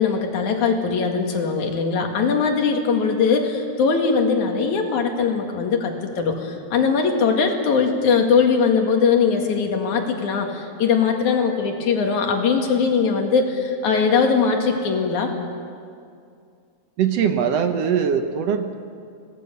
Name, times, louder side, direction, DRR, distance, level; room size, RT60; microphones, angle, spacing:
voice 1, 0.0-15.3, left 5 dB, 85° left, 3 dB, 3.5 m, -20 dB
voice 2, 17.0-18.7, right 7 dB, 65° right, 7 dB, 2.0 m, -21 dB
26.5 x 18.0 x 6.9 m, 2.3 s
omnidirectional pair, 3.3 m